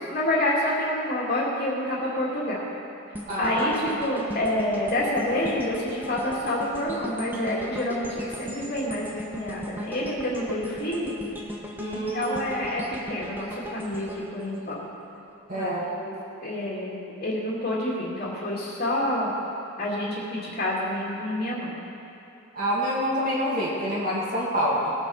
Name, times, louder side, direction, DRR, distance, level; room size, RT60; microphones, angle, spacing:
voice 1, 0.0-2.6 3.4-11.2 11.9-14.8 15.5-16.1 16.4-19.3 19.8-21.8, left 1 dB, 40° left, -6 dB, 2.3 m, -28 dB
sound 1, 3.1-15.3 15.7-15.9, equal, 10° right, 1.1 m, -38 dB
voice 2, 3.3-3.7 11.8-12.6 15.5-15.9 22.5-24.9, equal, 40° right, -9 dB, 2.2 m, -27 dB
20.0 x 7.3 x 5.6 m, 2.9 s
head